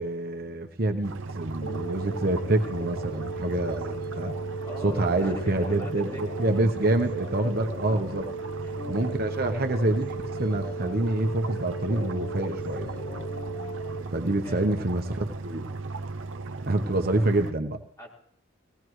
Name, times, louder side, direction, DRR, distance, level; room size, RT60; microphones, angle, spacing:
voice 1, 0.0-4.3 4.8-8.3 8.9-12.9 14.1-15.7 16.7-17.8, right 2 dB, 50° right, 5 dB, 1.0 m, -27 dB
sound 1, 1.0-17.5, right 3 dB, 75° right, 0.7 m, -36 dB
sound 2, 1.6-14.0, right 2 dB, 45° left, 0.8 m, -37 dB
voice 2, 4.6-6.5 6.8-6.9 8.6-8.8 14.4-14.9 18.0-18.1, equal, 15° left, -3 dB, 4.3 m, -43 dB
20.0 x 17.5 x 3.2 m, 0.65 s
head